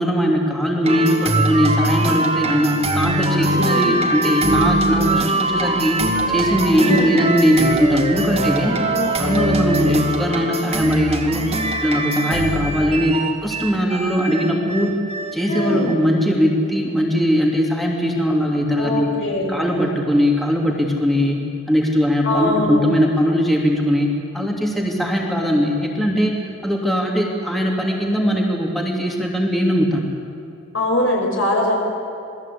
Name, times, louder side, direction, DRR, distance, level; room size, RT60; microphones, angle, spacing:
voice 1, 0.0-6.0 6.3-8.8 9.2-11.4 11.8-15.0 15.3-19.1 19.5-21.4 21.7-26.4 26.6-30.1, equal, ahead, -1 dB, 2.8 m, -20 dB
sound 1, 0.8-15.9, right 2 dB, 30° right, 2.4 m, -22 dB
voice 2, 3.5-4.0 6.8-7.1 8.9-9.6 15.5-15.9 18.7-19.6 22.2-22.8 30.7-31.8, left 1 dB, 70° left, 0 dB, 6.5 m, -22 dB
28.0 x 20.0 x 8.4 m, 2.7 s
head